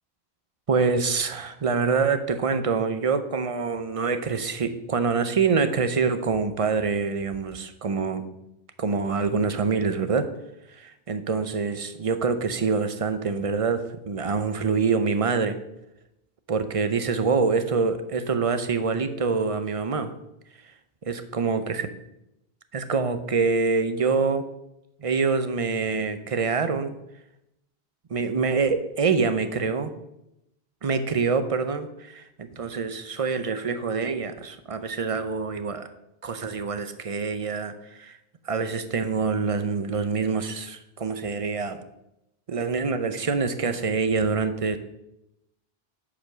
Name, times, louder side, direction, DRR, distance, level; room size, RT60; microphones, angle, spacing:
voice 1, 0.7-8.2 8.8-10.3 10.7-15.6 16.5-20.1 21.0-21.9 22.7-24.5 25.0-27.0 28.1-29.9 30.8-35.9 36.2-38.2 38.4-41.8 42.5-44.8, right 5 dB, 40° right, 10 dB, 0.7 m, -25 dB
8.4 x 5.4 x 6.1 m, 0.87 s
omnidirectional pair, 1.0 m